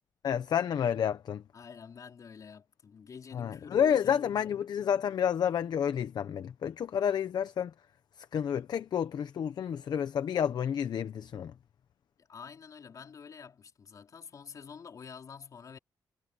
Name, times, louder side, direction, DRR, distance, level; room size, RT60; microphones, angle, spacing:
voice 1, 0.2-1.4 3.3-7.7 8.3-11.5, left 8 dB, 65° left, 1.0 m, -30 dB
voice 2, 1.5-4.6 12.2-15.8, left 6 dB, 50° left, 4.0 m, -48 dB
wide cardioid pair, 145°, 8 cm